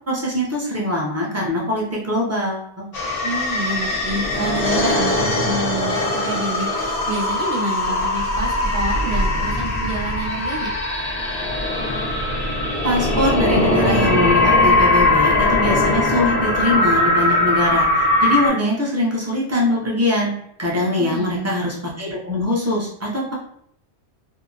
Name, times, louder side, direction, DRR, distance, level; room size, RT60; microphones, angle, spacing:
voice 1, 0.1-2.9 12.8-20.3 20.6-23.3, left 1 dB, 25° right, -4 dB, 0.4 m, -22 dB
sound 1, 2.9-18.5, left 2 dB, 45° left, 0.6 m, -20 dB
voice 2, 3.2-10.7 21.0-21.5, right 2 dB, 55° right, -4 dB, 0.9 m, -28 dB
2.6 x 2.0 x 2.5 m, 0.68 s
omnidirectional pair, 1.2 m